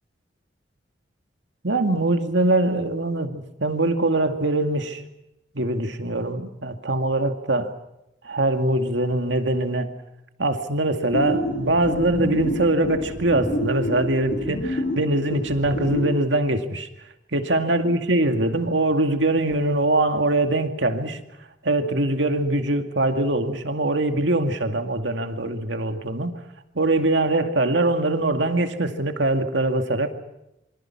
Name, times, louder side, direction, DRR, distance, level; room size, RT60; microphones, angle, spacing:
voice 1, 1.6-5.0 5.5-7.7 8.2-9.9 10.4-16.9 17.3-21.2 21.6-26.4 26.8-30.1, right 2 dB, 85° right, 6 dB, 2.2 m, -23 dB
sound 1, 11.1-16.2, equal, 50° left, 7.5 m, -28 dB
27.0 x 24.5 x 6.0 m, 0.87 s
head